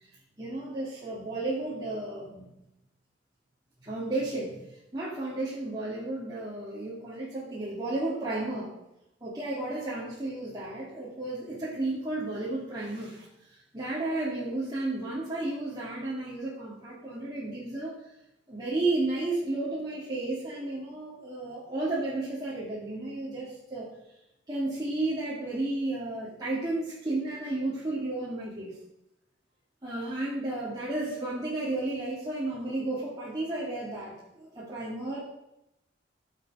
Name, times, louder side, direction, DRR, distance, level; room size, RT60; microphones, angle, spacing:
voice 1, 0.4-2.5 3.8-4.6 4.9-8.7 9.2-17.9 18.5-23.9 24.5-28.8 29.8-35.2, right 2 dB, 20° right, -8 dB, 3.0 m, -33 dB
15.0 x 7.3 x 5.1 m, 0.87 s
head